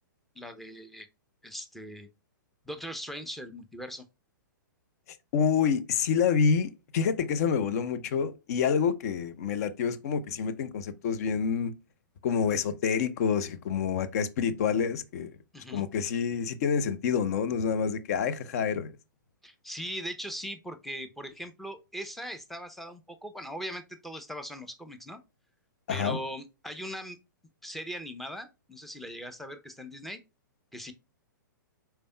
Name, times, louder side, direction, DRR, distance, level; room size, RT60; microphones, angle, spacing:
voice 1, 0.4-1.1 1.4-2.1 2.7-4.0 15.5-15.9 19.4-25.2 25.9-27.2 27.6-30.2 30.7-30.9, equal, ahead, 0.6 m, -40 dB
voice 2, 5.3-11.7 12.2-15.3 15.7-18.9 25.9-26.2, left 6 dB, 50° left, 0.6 m, -27 dB
5.2 x 4.4 x 2.2 m
figure-of-eight pair, 115°, 11 cm